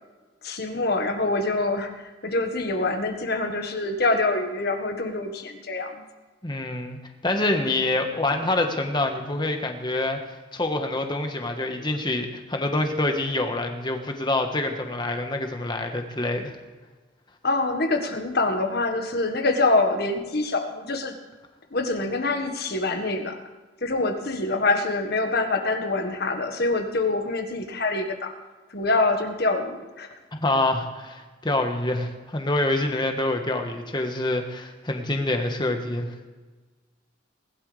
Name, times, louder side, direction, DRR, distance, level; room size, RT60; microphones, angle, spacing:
voice 1, 0.4-6.0 17.4-21.2 21.7-23.4 23.8-28.3 28.7-30.1, left 2 dB, 55° left, 5 dB, 1.6 m, -25 dB
voice 2, 6.4-7.0 7.2-16.5 30.3-36.1, left 2 dB, 20° left, 4 dB, 1.4 m, -26 dB
20.0 x 12.0 x 3.4 m, 1.3 s
head